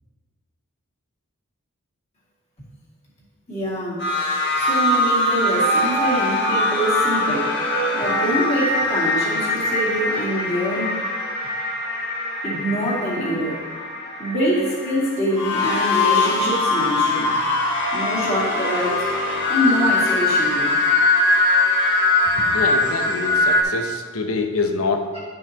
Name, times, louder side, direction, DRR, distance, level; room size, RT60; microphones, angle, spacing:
voice 1, 3.5-4.0 4.6-7.6 7.9-10.9 12.4-13.6 14.2-17.3 17.9-19.1 19.5-20.7, equal, 30° left, -7 dB, 2.3 m, -24 dB
sound 1, 4.0-23.6, left 2 dB, 55° left, 1.3 m, -21 dB
voice 2, 22.3-25.1, left 3 dB, 80° left, 4 dB, 0.9 m, -25 dB
11.0 x 5.4 x 2.9 m, 1.5 s
head